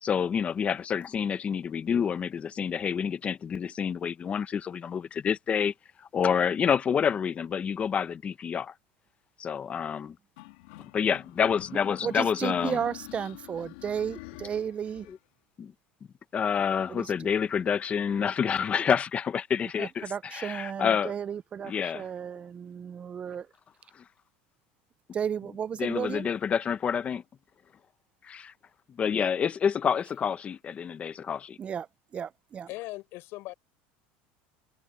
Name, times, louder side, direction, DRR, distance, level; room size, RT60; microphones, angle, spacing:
voice 1, 0.0-5.7 6.1-8.7 9.4-10.2 10.8-12.8 15.1-15.2 15.6-15.7 16.3-21.1 21.6-22.1 24.0-24.1 25.8-27.2 28.2-28.5 29.0-31.6, left 7 dB, 25° left, 0.9 m, -28 dB
sound 1, 10.4-15.2, left 23 dB, 85° left, 2.9 m, -46 dB
voice 2, 12.0-15.1 16.9-17.1 19.8-23.4 25.1-26.3 31.6-31.9 32.1-32.7, right 8 dB, 25° right, 0.5 m, -34 dB
voice 3, 32.7-33.5, left 20 dB, 60° left, 4.5 m, -39 dB
supercardioid pair, 140°, 5 cm